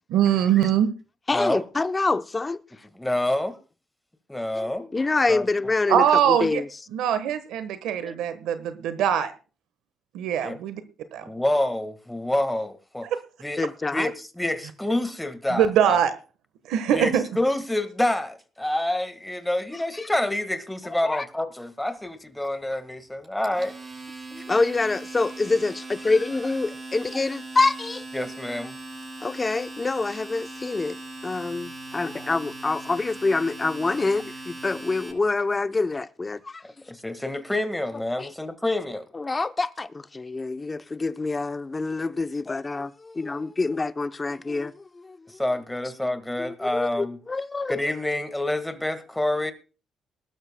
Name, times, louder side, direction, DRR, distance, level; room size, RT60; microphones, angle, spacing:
voice 1, 0.1-0.9 5.9-6.6 6.9-9.3 10.1-10.8 11.1-11.2 15.5-16.1 16.7-17.2, right 9 dB, 90° right, 1.2 m, -22 dB
voice 2, 1.3-2.6 4.5-6.7 8.0-8.1 13.6-14.1 20.0-20.1 21.0-21.3 24.3-28.1 29.2-36.6 38.2-38.3 39.1-45.3 46.4-47.7, left 3 dB, 25° left, 0.7 m, -26 dB
voice 3, 2.9-3.6 4.3-4.8 5.3-5.5 10.4-10.6 11.2-13.1 13.4-13.6 13.9-16.0 16.9-23.7 24.4-24.5 28.1-28.8 36.9-39.0 45.3-47.2 47.7-49.5, left 1 dB, 10° left, 1.6 m, -27 dB
Domestic sounds home sounds, 23.2-35.1, right 2 dB, 30° right, 7.6 m, -39 dB
20.5 x 12.5 x 2.2 m
cardioid pair, 90°, 0 cm